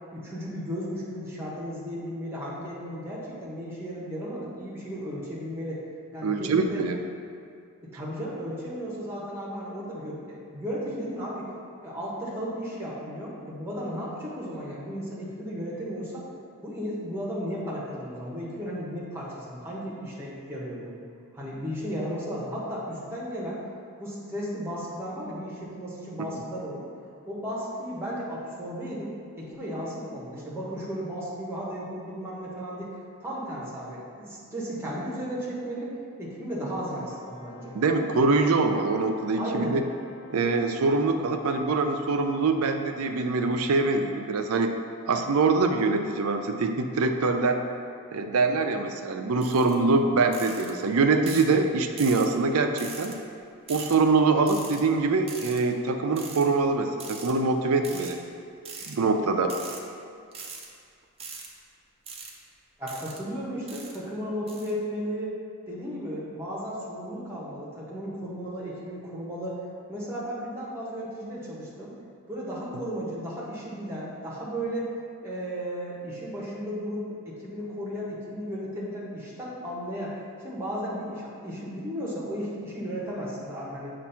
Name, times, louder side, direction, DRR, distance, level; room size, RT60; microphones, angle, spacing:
voice 1, 0.1-5.8 6.1-6.8 7.8-11.5 11.8-16.2 16.6-20.9 21.3-23.6 24.0-26.8 27.3-32.9 33.2-35.9 36.2-37.7 39.4-39.8 62.8-65.3 65.7-69.5 69.9-71.9 72.3-74.9 75.2-80.2 80.4-83.9, equal, 10° right, -6 dB, 1.1 m, -34 dB
voice 2, 6.2-7.0 37.7-39.8 40.3-44.7 45.1-47.6 48.1-53.1 53.7-58.2 58.9-59.5, right 3 dB, 75° right, 6 dB, 0.4 m, -24 dB
Brass instrument, 36.8-41.2, right 1 dB, 45° left, 0.7 m, -49 dB
sound 1, 49.4-49.7 50.3-50.7 51.3-51.5 52.0-52.3 52.8-53.2 53.7-54.0 54.5-54.8 55.3-55.6 56.2-56.4 57.0-57.3 57.8-58.1 58.7-59.0 59.4-59.8 60.3-60.7 61.2-61.5 62.1-62.3 62.9-63.2 63.7-64.0 64.5-64.7, right 5 dB, 25° right, 0.5 m, -41 dB
7.2 x 2.6 x 5.6 m, 2.4 s
head